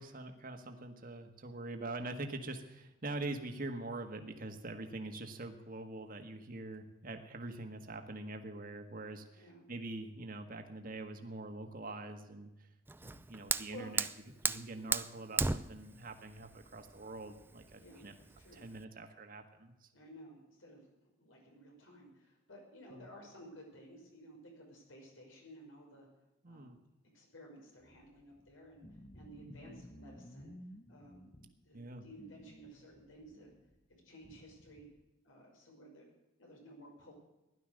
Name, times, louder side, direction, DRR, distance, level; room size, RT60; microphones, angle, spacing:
voice 1, 0.0-12.7 13.0-14.1 14.4-18.1 18.5-19.9 22.9-23.1 26.4-26.8 29.4-29.8 31.7-32.1, right 2 dB, 45° right, 6 dB, 1.7 m, -44 dB
Fire, 12.9-18.8, right 3 dB, 10° right, 0.4 m, -37 dB
voice 2, 17.8-18.6 19.9-20.9 21.2-26.1 26.4-26.8 27.1-28.8 29.1-30.5 30.9-33.5 33.9-34.9 35.2-36.1 36.4-37.1, equal, 85° left, 0 dB, 5.7 m, -55 dB
sound 1, 27.8-31.7 32.1-35.0, equal, 20° left, 0.9 m, -56 dB
16.0 x 11.5 x 6.5 m, 0.98 s
head